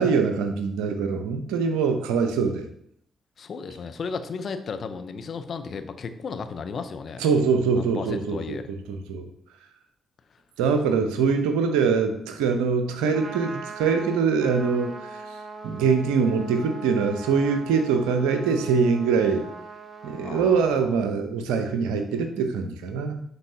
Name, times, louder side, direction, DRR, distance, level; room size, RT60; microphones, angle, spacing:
voice 1, 0.0-2.6 7.2-9.3 10.6-15.1 15.6-19.4 20.0-23.2, right 5 dB, 75° right, 7 dB, 0.7 m, -23 dB
voice 2, 3.4-7.2 7.8-8.7 11.0-11.1 20.2-20.9, left 5 dB, 55° left, 9 dB, 0.6 m, -34 dB
Trumpet, 13.0-20.6, right 3 dB, 45° right, 0.9 m, -40 dB
10.5 x 4.0 x 2.8 m, 0.67 s
hypercardioid pair, 40°, 0 cm